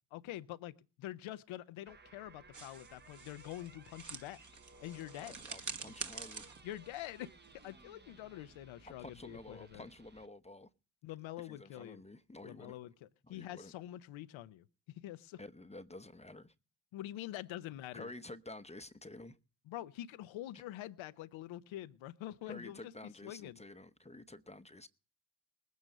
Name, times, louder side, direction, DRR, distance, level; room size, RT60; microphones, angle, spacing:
voice 1, 0.1-4.4 4.8-5.4 6.6-7.3 7.6-9.8 11.0-12.0 12.4-15.4 16.9-18.1 19.7-22.9 23.2-23.6, left 14 dB, 75° left, 0.8 m, -46 dB
sound 1, 1.9-10.3, right 3 dB, 20° right, 1.0 m, -60 dB
sound 2, 2.5-7.8, right 5 dB, 40° right, 1.7 m, -47 dB
voice 2, 5.2-6.4 8.8-10.7 11.4-12.8 13.2-13.7 15.4-16.5 17.9-19.4 22.5-24.9, left 2 dB, 15° left, 0.9 m, -50 dB
19.5 x 9.5 x 6.6 m
supercardioid pair, 45°, 47 cm